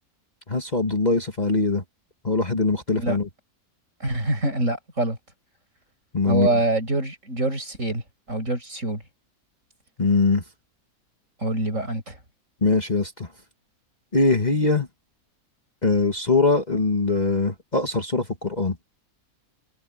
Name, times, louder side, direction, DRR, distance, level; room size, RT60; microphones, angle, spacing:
voice 1, 0.5-1.8 2.2-3.3 6.1-6.6 10.0-10.4 12.6-13.3 14.1-14.9 15.8-18.8, left 3 dB, 30° left, 1.7 m, -22 dB
voice 2, 4.0-5.2 6.3-8.0 8.3-9.0 11.4-12.1, right 2 dB, 55° right, 7.3 m, -25 dB
omnidirectional pair, 1.6 m